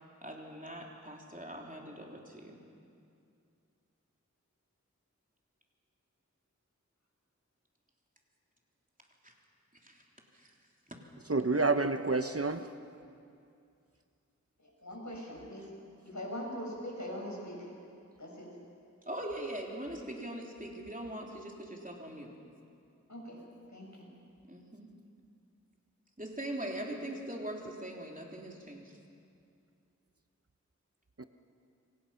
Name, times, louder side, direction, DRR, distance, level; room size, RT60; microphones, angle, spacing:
voice 1, 0.2-2.6 9.2-9.3 9.8-10.0 10.3-10.5 19.0-22.3 24.5-24.9 26.2-28.8, right 1 dB, 25° right, -1 dB, 3.4 m, -41 dB
voice 2, 11.3-12.7 31.2-31.3, right 3 dB, 50° right, 8 dB, 1.0 m, -28 dB
voice 3, 14.6-15.7 16.0-17.7 18.2-18.6 23.1-23.4 23.7-24.1, equal, 70° left, -2 dB, 6.3 m, -42 dB
28.0 x 24.0 x 5.8 m, 2.4 s
wide cardioid pair, 40°, 30 cm